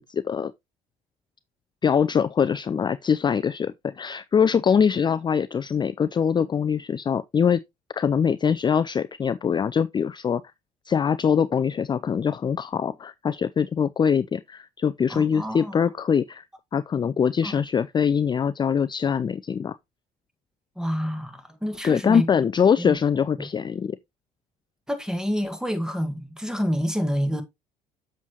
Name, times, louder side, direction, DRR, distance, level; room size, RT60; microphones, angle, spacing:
voice 1, 0.1-0.5 1.8-7.6 7.9-10.4 10.9-16.4 16.7-19.8 21.8-24.0, left 7 dB, 25° left, 0.4 m, -23 dB
voice 2, 15.1-15.9 17.4-17.6 20.8-22.3 22.8-23.0 24.9-27.4, equal, 5° right, 1.7 m, -28 dB
7.2 x 6.4 x 3.0 m
hypercardioid pair, 65°, 17 cm